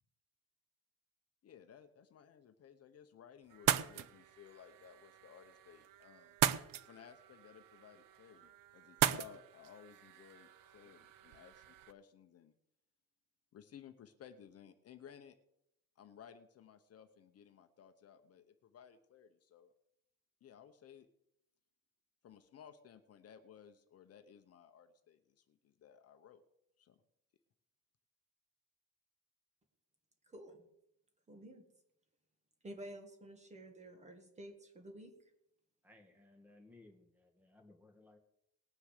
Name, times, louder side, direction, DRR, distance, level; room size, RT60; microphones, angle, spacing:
voice 1, 1.4-6.4 6.8-12.5 13.5-15.4 16.0-19.7 20.4-21.1 22.2-26.4 26.8-27.0, left 8 dB, 50° left, 8 dB, 0.9 m, -58 dB
sound 1, 3.5-11.9, right 12 dB, 80° right, 0.8 m, -39 dB
voice 2, 30.3-30.6 31.3-31.6 32.6-35.1, right 1 dB, 20° right, 4 dB, 1.9 m, -51 dB
voice 3, 35.8-38.2, left 2 dB, 5° right, 3 dB, 1.8 m, -62 dB
19.0 x 6.5 x 6.6 m, 0.79 s
cardioid pair, 180°, 33 cm